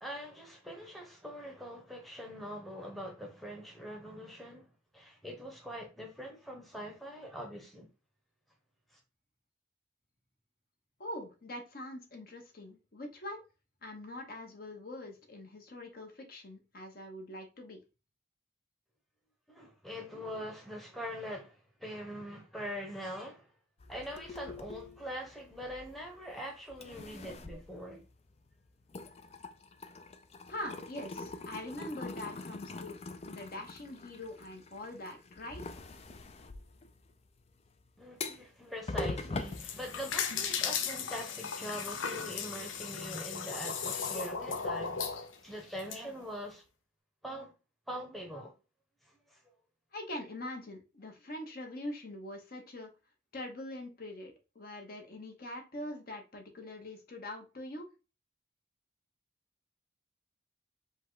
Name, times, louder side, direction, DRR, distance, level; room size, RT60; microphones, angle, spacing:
voice 1, 0.0-4.7 4.9-7.9 8.9-9.0 19.5-23.5 23.9-28.0 38.0-45.0 45.4-46.6 47.2-47.5 47.9-48.6 49.0-49.4, equal, ahead, 0.9 m, -43 dB
voice 2, 11.0-13.4 13.8-17.8 30.5-35.6 49.9-52.9 53.3-57.9, left 1 dB, 50° left, 1.1 m, -43 dB
sound 1, 23.8-26.3 26.7-28.5 28.8-40.5, left 3 dB, 35° left, 0.4 m, -43 dB
sound 2, 39.4-46.0, left 6 dB, 80° left, 0.6 m, -36 dB
5.2 x 2.3 x 3.7 m
head